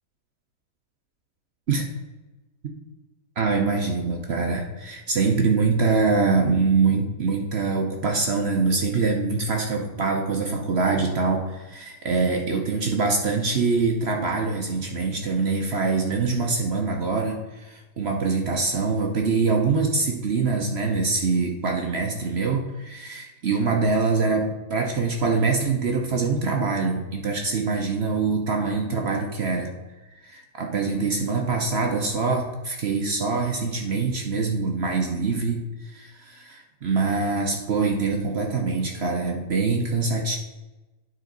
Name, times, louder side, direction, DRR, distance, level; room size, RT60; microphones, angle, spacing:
voice 1, 3.4-29.7 30.2-40.4, right 4 dB, 60° right, 2 dB, 0.7 m, -24 dB
9.3 x 4.4 x 3.9 m, 1.1 s
omnidirectional pair, 1.9 m